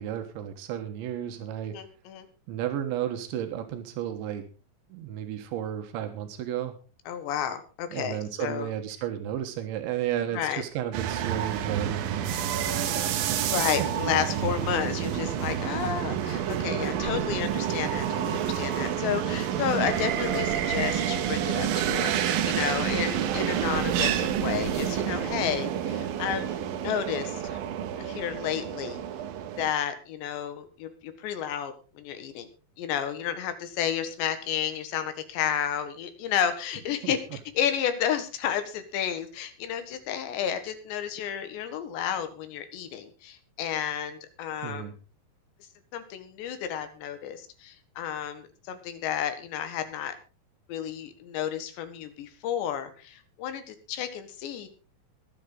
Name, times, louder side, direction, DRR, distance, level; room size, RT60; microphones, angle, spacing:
voice 1, 0.0-1.8 2.5-4.4 4.9-6.8 7.9-12.3 12.7-13.4 37.0-37.1 44.6-44.9, right 11 dB, 90° right, 6 dB, 3.7 m, -33 dB
voice 2, 1.7-2.3 7.1-8.7 10.3-10.6 13.4-27.6 28.0-29.0 29.6-32.5 32.8-44.9 45.9-50.2 50.7-54.7, left 9 dB, 80° left, 9 dB, 3.8 m, -31 dB
sound 1, 10.9-29.7, right 9 dB, 70° right, 2.5 m, -29 dB
22.5 x 8.2 x 3.9 m, 0.34 s
omnidirectional pair, 5.1 m